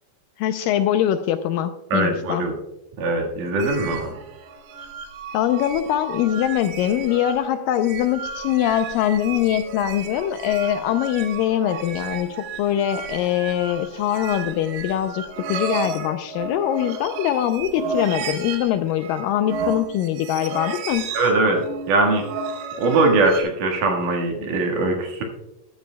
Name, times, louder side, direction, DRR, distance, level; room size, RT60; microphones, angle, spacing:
voice 1, 0.4-2.5 5.3-21.1, left 11 dB, 80° left, 9 dB, 2.1 m, -23 dB
voice 2, 1.9-2.5 3.0-4.1 21.1-22.2 22.8-25.2, right 2 dB, 65° right, 2 dB, 3.0 m, -21 dB
sound 1, 3.6-23.4, right 5 dB, 85° right, 2.9 m, -33 dB
14.0 x 13.5 x 2.2 m, 0.94 s
omnidirectional pair, 4.3 m